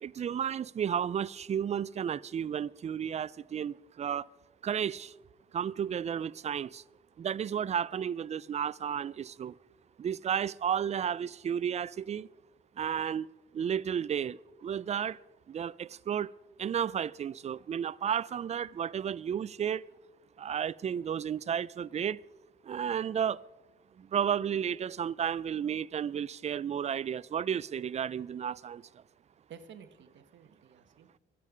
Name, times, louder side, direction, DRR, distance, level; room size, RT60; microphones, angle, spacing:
voice 1, 0.0-4.3 4.6-5.1 5.5-6.8 7.2-9.5 10.0-12.3 12.8-13.3 13.5-15.2 15.5-16.3 16.6-19.8 20.4-22.2 22.7-23.4 24.0-28.8, right 8 dB, 35° right, 0.4 m, -32 dB
voice 2, 29.5-31.2, right 7 dB, 65° right, 1.4 m, -52 dB
22.0 x 8.6 x 5.0 m
cardioid pair, 90°, 20 cm